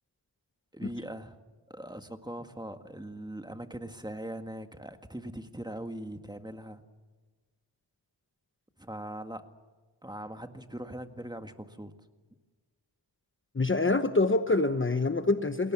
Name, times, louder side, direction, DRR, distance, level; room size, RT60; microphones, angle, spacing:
voice 1, 0.7-1.4 1.7-6.8 8.8-9.5 10.0-11.9, right 1 dB, 10° right, 1.8 m, -41 dB
voice 2, 13.5-15.7, left 3 dB, 30° left, 1.1 m, -25 dB
29.5 x 20.5 x 7.3 m
wide cardioid pair, 90°, 43 cm